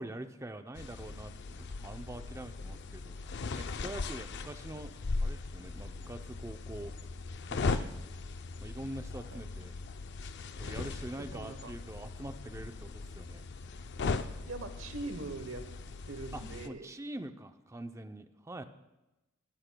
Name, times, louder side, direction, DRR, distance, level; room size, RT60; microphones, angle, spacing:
voice 1, 0.0-3.2 3.6-4.9 5.2-6.9 7.5-8.1 8.6-9.7 10.6-13.5 16.3-18.6, right 1 dB, 15° right, 8 dB, 0.6 m, -44 dB
sound 1, 0.8-16.7, left 3 dB, 55° left, 0.5 m, -39 dB
voice 2, 11.2-11.7 14.5-15.6 16.1-16.9, right 2 dB, 70° right, 8 dB, 1.0 m, -42 dB
19.0 x 13.0 x 2.3 m, 1.0 s
head